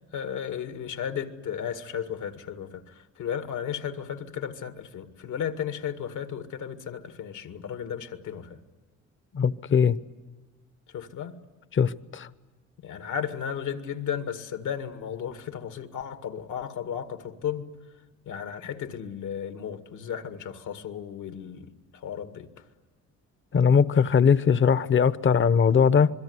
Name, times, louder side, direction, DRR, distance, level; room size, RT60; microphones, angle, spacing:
voice 1, 0.1-8.6 10.9-11.4 12.8-17.7 18.3-22.5, left 8 dB, 80° left, 8 dB, 2.2 m, -34 dB
voice 2, 9.3-10.0 11.7-12.3 23.5-26.1, left 6 dB, 40° left, 16 dB, 0.9 m, -20 dB
26.5 x 22.5 x 9.7 m, 1.2 s
cardioid pair, 90°, 30 cm